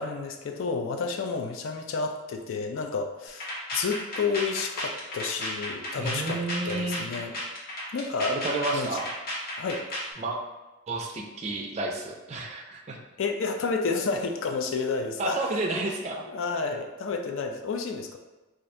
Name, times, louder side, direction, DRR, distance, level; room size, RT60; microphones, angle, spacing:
voice 1, 0.0-7.3 7.9-8.4 8.7-9.0 9.6-9.8 13.2-15.5 16.3-18.2, left 4 dB, 65° left, 4 dB, 0.4 m, -30 dB
sound 1, 3.3-10.1, left 1 dB, 45° left, 0.8 m, -34 dB
voice 2, 6.0-7.1 8.3-9.1 10.2-10.4 10.9-13.0 15.2-16.2, right 2 dB, 30° right, 0 dB, 0.3 m, -31 dB
2.6 x 2.4 x 4.2 m, 1.1 s
head